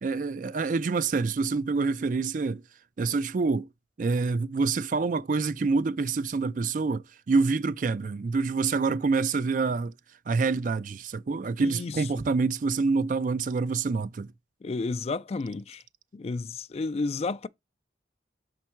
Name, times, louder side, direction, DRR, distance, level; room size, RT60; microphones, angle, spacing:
voice 1, 0.0-2.6 3.0-3.7 4.0-9.9 10.3-14.3, right 4 dB, 45° right, 0.4 m, -27 dB
voice 2, 11.6-12.1 14.6-15.8 16.1-17.5, left 3 dB, 35° left, 0.3 m, -32 dB
6.2 x 4.6 x 4.4 m
head